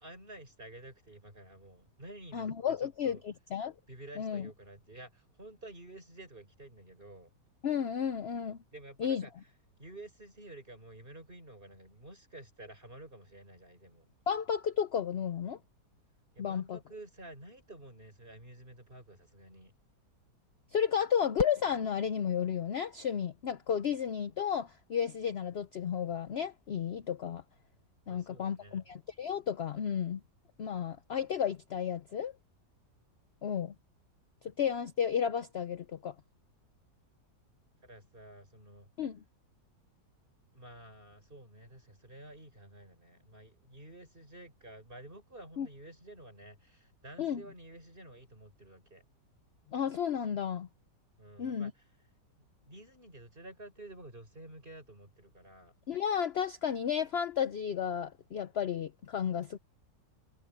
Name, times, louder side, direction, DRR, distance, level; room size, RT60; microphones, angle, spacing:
voice 1, 0.0-3.2 3.9-7.4 8.7-9.5 9.8-14.1 16.3-19.7 28.1-28.8 37.8-38.9 40.5-49.0 51.2-51.9 52.6-55.7, right 1 dB, 30° right, 7.0 m, -51 dB
voice 2, 2.3-3.7 4.2-4.5 7.6-8.6 9.0-9.2 14.3-15.6 16.4-16.8 20.7-27.4 28.1-30.2 30.6-32.3 33.4-33.7 34.4-36.1 39.0-39.2 45.6-45.7 47.2-47.4 49.7-50.7 51.4-51.7 55.9-59.6, left 8 dB, 60° left, 0.6 m, -32 dB
Fireworks, 21.4-23.6, left 2 dB, 90° left, 4.9 m, -43 dB
omnidirectional pair, 1.9 m